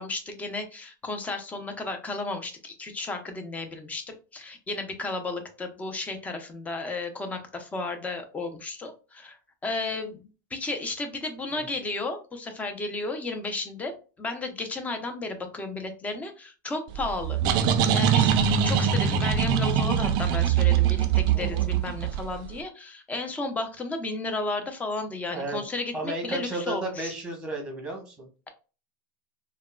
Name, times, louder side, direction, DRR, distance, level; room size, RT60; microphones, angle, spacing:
voice 1, 0.0-4.0 4.3-17.7 17.9-27.1, left 3 dB, 15° left, 6 dB, 0.6 m, -33 dB
sound 1, 16.9-22.5, right 8 dB, 45° right, 0.4 m, -23 dB
voice 2, 21.3-21.7 25.3-25.6 25.9-28.3, right 2 dB, 10° right, 1 dB, 1.0 m, -33 dB
3.5 x 2.1 x 2.2 m, 0.34 s
supercardioid pair, 130°, 10 cm